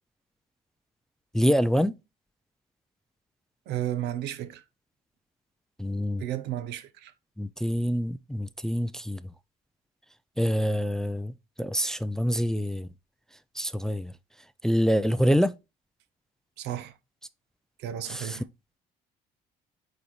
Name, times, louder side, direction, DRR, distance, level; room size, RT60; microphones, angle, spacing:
voice 1, 1.3-2.0 5.8-6.2 7.4-9.3 10.4-12.9 13.5-14.2 14.6-15.6 18.1-18.4, equal, 5° left, 0.3 m, -26 dB
voice 2, 3.7-4.6 6.2-7.1 16.6-16.9 17.8-18.4, right 12 dB, 85° right, 0.7 m, -33 dB
8.4 x 4.0 x 3.0 m
cardioid pair, 110°, 17 cm